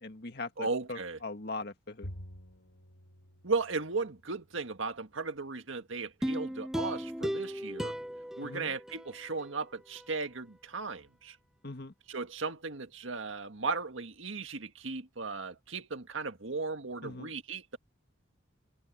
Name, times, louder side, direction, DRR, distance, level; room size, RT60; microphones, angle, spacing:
voice 1, 0.0-2.1 8.4-8.7 11.6-11.9 17.0-17.3, left 3 dB, 55° left, 2.0 m, -41 dB
voice 2, 0.6-1.2 3.4-7.9 8.4-11.4 12.1-17.8, right 4 dB, 75° right, 1.7 m, -36 dB
Bowed string instrument, 2.0-4.6, equal, 75° left, 1.9 m, -48 dB
sound 1, 6.2-9.5 10.0-10.1, equal, ahead, 0.7 m, -36 dB
head